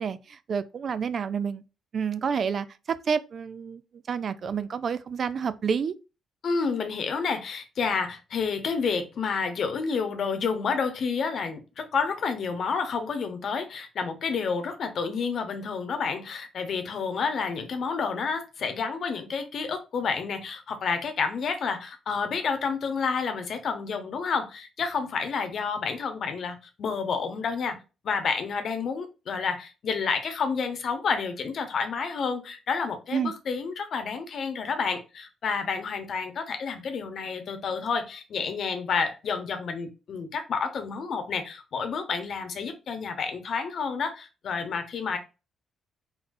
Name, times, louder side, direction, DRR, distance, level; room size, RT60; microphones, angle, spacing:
voice 1, 0.0-1.6 1.9-3.8 4.1-5.9 33.1-33.3, right 6 dB, 50° right, 0.4 m, -29 dB
voice 2, 6.4-27.8 28.0-45.2, left 5 dB, 60° left, 1.0 m, -29 dB
4.2 x 4.0 x 2.7 m
cardioid pair, 90°, 0 cm